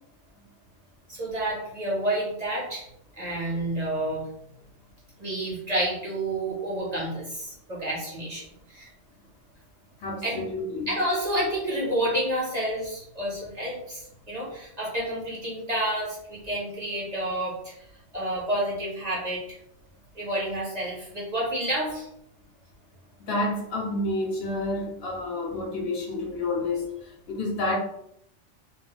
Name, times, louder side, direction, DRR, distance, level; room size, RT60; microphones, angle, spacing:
voice 1, 1.1-2.8 3.2-4.2 5.2-8.9 10.2-10.4 10.9-17.9 18.1-19.6 20.1-22.1, right 1 dB, 40° right, -6 dB, 0.8 m, -29 dB
voice 2, 10.0-10.9 23.2-26.9 27.3-27.8, left 2 dB, 65° left, -2 dB, 0.8 m, -29 dB
2.3 x 2.1 x 3.0 m, 0.76 s
omnidirectional pair, 1.2 m